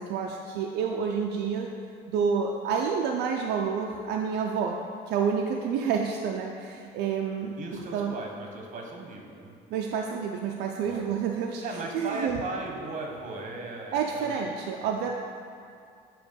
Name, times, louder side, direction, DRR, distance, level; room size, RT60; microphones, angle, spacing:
voice 1, 0.0-1.7 2.1-4.8 5.1-7.5 7.9-8.1 9.7-11.6 11.9-12.4 13.9-15.1, right 6 dB, 80° right, 1 dB, 0.5 m, -29 dB
voice 2, 7.6-9.6 10.8-11.1 11.6-14.5 14.8-15.1, right 2 dB, 45° right, 1 dB, 1.1 m, -37 dB
7.9 x 3.0 x 5.2 m, 2.4 s
cardioid pair, 110°, 17 cm